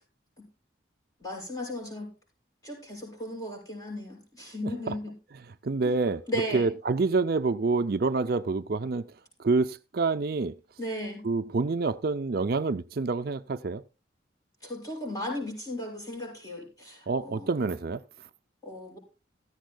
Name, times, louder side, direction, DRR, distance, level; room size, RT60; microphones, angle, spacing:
voice 1, 1.2-2.1 2.6-5.2 5.8-6.0 6.3-6.7 10.8-11.3 14.6-17.5 18.6-19.0, left 1 dB, 20° left, 6.7 m, -36 dB
voice 2, 5.6-6.2 6.5-9.1 9.4-10.5 11.2-13.8 17.1-18.0, right 3 dB, 50° right, 0.5 m, -27 dB
16.5 x 14.0 x 2.3 m
head